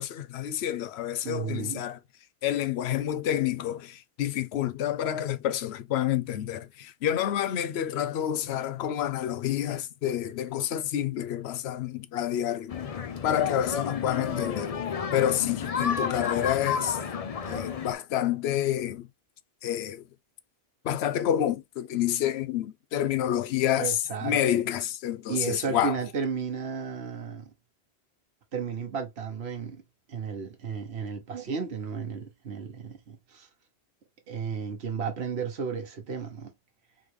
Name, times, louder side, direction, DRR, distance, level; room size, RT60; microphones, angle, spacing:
voice 1, 0.0-2.0 2.4-12.7 13.2-14.8 15.1-17.0 17.5-19.1 19.6-20.0 20.8-26.0, left 11 dB, 75° left, 0.8 m, -28 dB
voice 2, 1.2-1.9 23.7-24.4 25.3-27.5 28.5-29.8 30.1-33.5 34.3-36.5, right 6 dB, 75° right, 1.3 m, -33 dB
sound 1, 12.7-17.9, left 6 dB, 45° left, 0.5 m, -31 dB
3.8 x 3.2 x 3.2 m
omnidirectional pair, 1.1 m